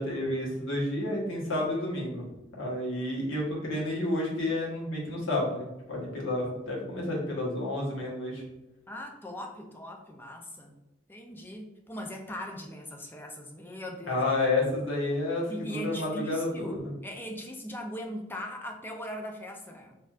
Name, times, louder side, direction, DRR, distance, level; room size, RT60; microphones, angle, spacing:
voice 1, 0.0-2.3 2.6-8.4 14.1-16.9, left 2 dB, 80° left, -3 dB, 1.2 m, -30 dB
voice 2, 8.9-10.8 11.1-14.2 15.5-20.0, equal, 10° left, 2 dB, 0.4 m, -40 dB
4.2 x 2.6 x 2.4 m, 0.99 s
head